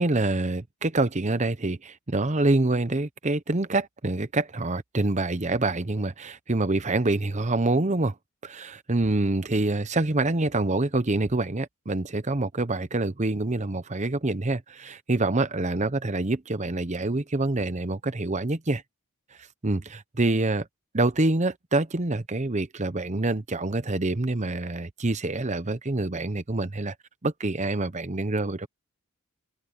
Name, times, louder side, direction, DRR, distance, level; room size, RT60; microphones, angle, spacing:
voice 1, 0.0-8.1 8.4-18.8 19.6-20.7 20.9-26.9 27.2-28.7, right 2 dB, 35° right, 0.9 m, -26 dB
head